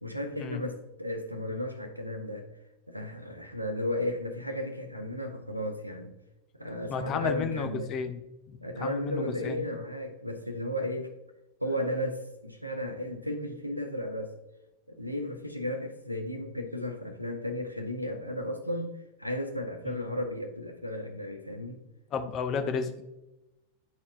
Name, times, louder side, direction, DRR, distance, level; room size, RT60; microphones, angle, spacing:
voice 1, 0.0-2.5 2.9-6.1 6.6-7.9 8.6-11.1 11.6-14.3 14.9-18.9 19.2-21.8, left 1 dB, 90° right, 0.6 m, -34 dB
voice 2, 6.9-8.2 8.5-9.6 19.9-20.0 22.1-23.0, left 6 dB, 30° left, 0.7 m, -32 dB
10.5 x 4.2 x 2.5 m
figure-of-eight pair, 90°, 0 cm